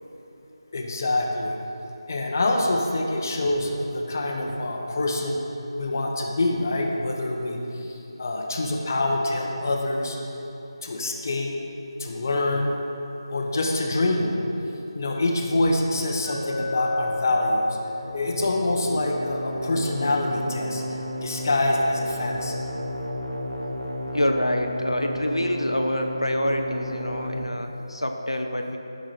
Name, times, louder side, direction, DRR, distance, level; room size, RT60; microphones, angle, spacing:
voice 1, 0.7-1.6 2.1-5.4 5.8-10.2 10.8-11.5 12.0-12.7 13.3-14.3 14.9-17.8 18.1-20.8 21.2-22.5, left 2 dB, 35° left, 1 dB, 0.9 m, -25 dB
Glass, 16.2-20.4, left 3 dB, 30° right, 2.2 m, -35 dB
sound 1, 18.0-27.4, equal, 85° right, 1.3 m, -33 dB
voice 2, 24.1-28.8, left 1 dB, 85° left, 4 dB, 0.7 m, -26 dB
11.0 x 6.1 x 4.2 m, 3.0 s
figure-of-eight pair, 160°, 3 cm